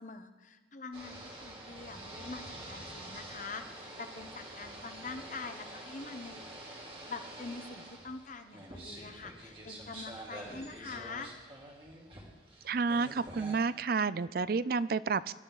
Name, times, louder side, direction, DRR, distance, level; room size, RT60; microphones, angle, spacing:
voice 1, 0.0-6.8 7.1-11.3, left 4 dB, 40° left, 8 dB, 1.0 m, -45 dB
sound 1, 0.9-13.5, right 1 dB, 30° right, 2.8 m, -47 dB
voice 2, 12.6-15.3, right 4 dB, 50° right, 17 dB, 0.4 m, -30 dB
25.0 x 12.5 x 4.0 m, 1.3 s
head